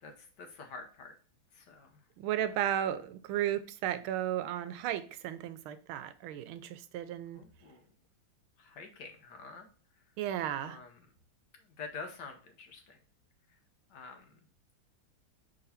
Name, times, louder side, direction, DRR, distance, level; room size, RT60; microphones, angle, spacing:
voice 1, 0.0-1.2 1.5-2.0 7.3-7.8 8.6-9.7 10.0-10.1 10.6-11.0 11.6-13.0 13.5-13.6 13.9-14.4, left 4 dB, 60° left, 1.5 m, -47 dB
voice 2, 2.2-7.4 10.2-10.8, right 11 dB, 85° right, 1.5 m, -34 dB
4.8 x 3.8 x 5.6 m
omnidirectional pair, 2.3 m